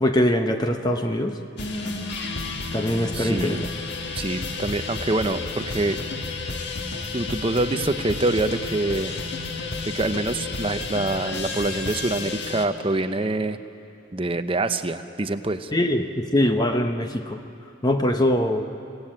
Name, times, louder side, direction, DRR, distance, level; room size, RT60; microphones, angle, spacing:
voice 1, 0.0-1.4 2.7-3.6 15.7-17.4 17.8-18.6, left 1 dB, 20° left, 5 dB, 0.8 m, -22 dB
sound 1, 1.6-12.7, left 3 dB, 55° left, 1.6 m, -31 dB
voice 2, 3.1-3.6 4.1-6.0 7.1-9.1 9.8-13.6 14.1-15.7, right 2 dB, 25° right, 9 dB, 0.7 m, -25 dB
29.0 x 17.0 x 8.8 m, 2.8 s
head